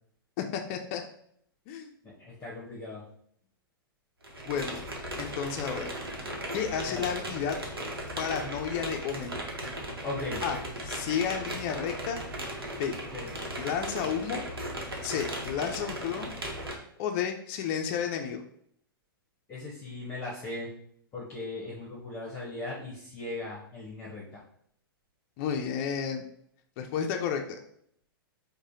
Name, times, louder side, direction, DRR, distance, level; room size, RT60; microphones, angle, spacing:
voice 1, 0.4-1.0 1.7-1.9 4.5-4.8 5.2-5.9 6.5-7.6 8.2-9.4 10.4-10.6 10.8-12.2 12.8-12.9 13.5-14.4 15.0-16.3 17.0-18.4 25.4-26.2 26.8-27.6, left 7 dB, 40° left, 4 dB, 0.5 m, -32 dB
voice 2, 2.0-3.0 6.8-7.0 10.0-10.4 13.1-13.3 15.6-15.7 19.5-20.7 21.1-24.4, left 2 dB, 20° left, -5 dB, 0.8 m, -38 dB
sound 1, 4.2-16.7, right 1 dB, 80° right, 0.8 m, -37 dB
4.7 x 2.2 x 2.7 m, 0.68 s
figure-of-eight pair, 105°, 12 cm